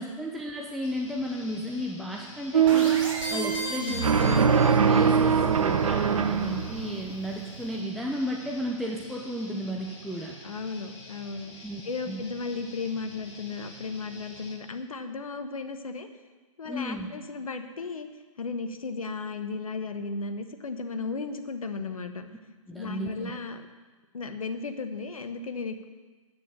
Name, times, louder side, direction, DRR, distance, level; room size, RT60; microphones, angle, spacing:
voice 1, 0.0-3.0 3.3-10.4 11.6-11.8 12.1-12.2 16.7-17.1 22.7-23.3, equal, ahead, -1 dB, 0.6 m, -34 dB
Guitar, 0.8-14.5, left 1 dB, 45° left, 4.0 m, -48 dB
sound 1, 2.5-7.6, right 6 dB, 80° right, 0.8 m, -23 dB
sound 2, 2.7-5.1, right 1 dB, 40° right, 3.2 m, -35 dB
voice 2, 3.8-4.1 10.4-16.1 16.6-18.1 18.4-22.3 22.7-23.7 24.1-25.8, left 4 dB, 85° left, 7 dB, 1.1 m, -35 dB
9.2 x 6.8 x 7.5 m, 1.3 s
hypercardioid pair, 135°, 18 cm